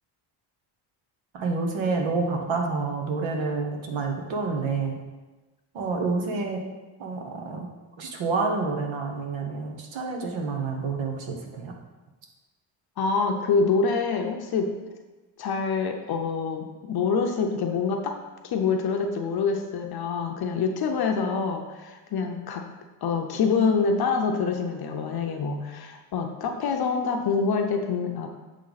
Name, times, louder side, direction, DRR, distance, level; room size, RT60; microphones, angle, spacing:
voice 1, 1.3-5.0 5.7-6.6 7.0-7.7 8.0-11.7, right 4 dB, 75° right, 2 dB, 1.1 m, -28 dB
voice 2, 13.0-14.7 15.4-18.2 18.4-22.6 23.0-28.3, left 5 dB, 50° left, 4 dB, 0.6 m, -26 dB
7.5 x 3.3 x 4.0 m, 1.2 s
cardioid pair, 125°, 48 cm